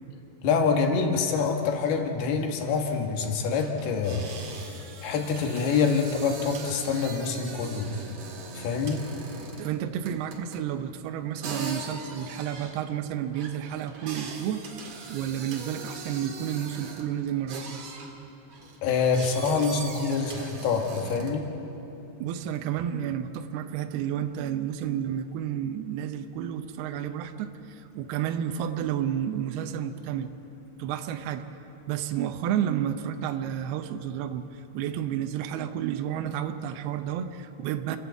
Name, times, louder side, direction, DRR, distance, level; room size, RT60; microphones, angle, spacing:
voice 1, 0.4-4.3 5.0-7.9 8.5-9.1 18.8-21.5, left 5 dB, 65° left, 3 dB, 3.2 m, -26 dB
sound 1, 2.8-3.0 3.5-9.8 10.1-10.7 11.4-17.1 17.5-18.1 18.5-21.5, right 4 dB, 50° right, 2.2 m, -41 dB
voice 2, 9.6-14.6 15.1-17.8 22.2-30.3 30.8-31.5 31.9-38.0, right 10 dB, 80° right, 7 dB, 2.4 m, -31 dB
29.5 x 11.0 x 8.3 m, 3.0 s
omnidirectional pair, 5.5 m